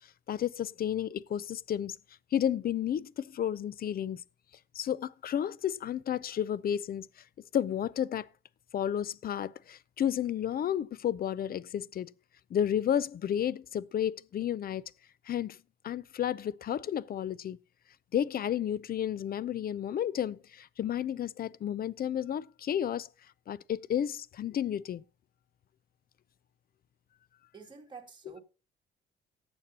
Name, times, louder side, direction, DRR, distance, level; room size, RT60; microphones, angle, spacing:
voice 1, 0.3-2.0 2.3-4.2 4.7-7.1 7.5-8.3 8.7-12.1 12.5-14.8 15.3-15.6 15.8-17.6 18.1-23.1 23.5-25.0, left 10 dB, 50° left, 0.5 m, -32 dB
voice 2, 27.5-28.4, right 5 dB, 25° right, 2.3 m, -48 dB
18.5 x 7.1 x 2.9 m
cardioid pair, 90°, 20 cm